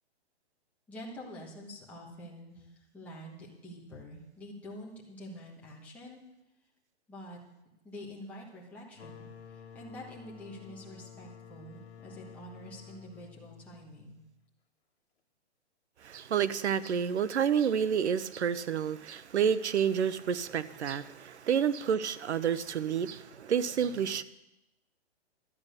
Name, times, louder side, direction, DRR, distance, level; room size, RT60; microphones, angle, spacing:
voice 1, 0.9-6.2 7.1-7.4 7.8-14.2, equal, 5° left, 1.3 m, -47 dB
sound 1, 8.9-14.4, left 7 dB, 70° left, 1.6 m, -51 dB
voice 2, 16.0-24.2, right 8 dB, 85° right, 0.9 m, -29 dB
12.5 x 8.9 x 6.6 m
hypercardioid pair, 175°, 33 cm